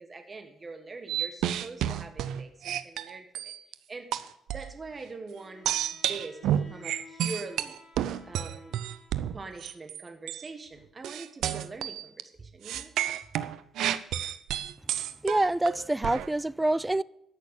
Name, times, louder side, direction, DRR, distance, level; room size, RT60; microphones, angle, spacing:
voice 1, 0.0-3.5 3.9-4.1 4.5-7.8 8.2-8.7 9.3-12.9, right 3 dB, 30° right, 1.5 m, -43 dB
sound 1, 1.1-3.7 4.1-4.7 5.7-10.0 10.3-10.5 11.0-12.2 12.6-16.3, right 11 dB, 80° right, 0.6 m, -31 dB
Bowed string instrument, 5.3-9.6, left 3 dB, 35° left, 4.0 m, -55 dB
voice 2, 15.2-17.0, right 1 dB, 10° right, 0.4 m, -26 dB
13.5 x 6.6 x 8.3 m
cardioid pair, 90°, 0 cm